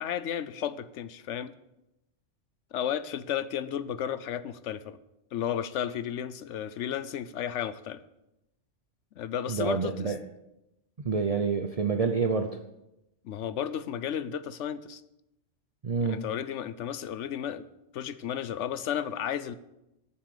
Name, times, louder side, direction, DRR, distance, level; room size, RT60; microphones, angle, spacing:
voice 1, 0.0-1.5 2.7-5.0 5.3-8.0 9.2-10.1 13.2-15.0 16.0-17.7 17.9-19.5, left 9 dB, 80° left, 15 dB, 1.0 m, -33 dB
voice 2, 9.5-10.2 11.0-12.5 15.8-16.2, right 5 dB, 40° right, 5 dB, 0.7 m, -27 dB
13.0 x 7.2 x 6.7 m, 0.89 s
omnidirectional pair, 1.2 m